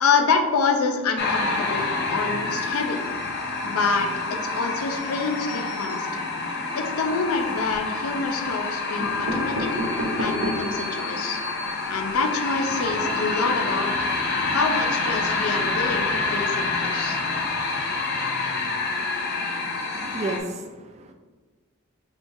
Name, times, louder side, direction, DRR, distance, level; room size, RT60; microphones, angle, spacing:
voice 1, 0.0-3.0 3.6-6.1 6.7-9.7 10.2-11.4 11.9-13.9 14.5-17.2, left 4 dB, 90° left, 5 dB, 0.5 m, -26 dB
sound 1, 1.2-20.4, left 3 dB, 50° left, 0.6 m, -27 dB
sound 2, 7.3-7.9 8.6-8.7 9.0-10.8 11.3-11.4 11.6-11.7 12.0-12.2, equal, 75° right, 0.9 m, -30 dB
voice 2, 19.9-21.1, right 2 dB, 30° right, 4 dB, 0.4 m, -32 dB
5.3 x 3.1 x 2.6 m, 1.3 s
head